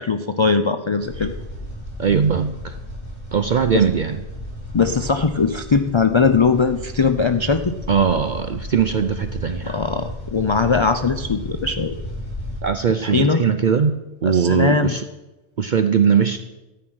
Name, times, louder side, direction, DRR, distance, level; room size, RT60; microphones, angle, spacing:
voice 1, 0.0-1.3 3.7-3.8 4.7-7.8 9.7-11.9 13.0-13.4 14.2-14.9, left 4 dB, 40° left, 9 dB, 0.4 m, -20 dB
sound 1, 1.0-12.6, left 1 dB, 60° left, 4.7 m, -34 dB
voice 2, 2.0-2.8 3.3-4.2 7.9-9.8 12.6-15.0 15.6-16.4, right 7 dB, 55° right, 9 dB, 0.6 m, -20 dB
13.0 x 9.2 x 6.3 m, 1.1 s
omnidirectional pair, 1.2 m